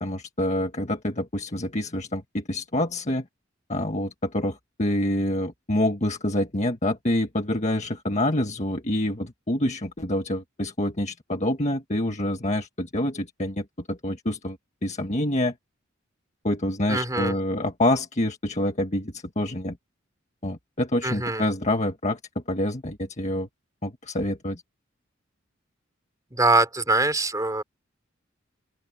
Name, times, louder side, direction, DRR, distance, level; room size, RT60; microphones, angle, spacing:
voice 1, 0.0-3.3 3.7-14.6 14.8-15.5 16.4-19.8 20.4-22.2 22.5-23.5 23.8-24.6, left 1 dB, 35° left, 1.7 m, -27 dB
voice 2, 16.9-17.3 21.0-21.5 26.3-27.6, right 2 dB, 15° right, 4.3 m, -23 dB
open air
head